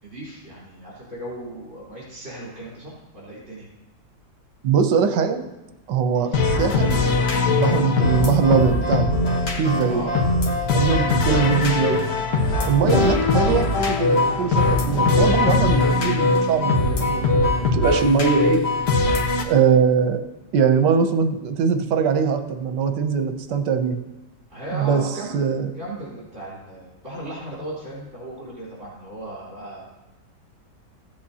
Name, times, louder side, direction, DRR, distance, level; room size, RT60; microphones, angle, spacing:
voice 1, 0.0-3.7 6.1-6.4 9.9-10.2 12.5-12.8 19.0-19.3 24.5-25.4 25.7-29.8, right 1 dB, 45° right, -8 dB, 4.3 m, -36 dB
voice 2, 4.6-5.5 5.9-6.9 7.5-9.1 9.6-10.0 10.7-12.0 12.7-18.6 19.4-20.3 20.5-24.0 24.7-25.0 25.3-25.7, right 6 dB, 85° right, 7 dB, 1.4 m, -21 dB
sound 1, 6.3-19.4, left 3 dB, 75° left, 1.8 m, -21 dB
15.5 x 8.5 x 2.8 m, 1.0 s
omnidirectional pair, 1.8 m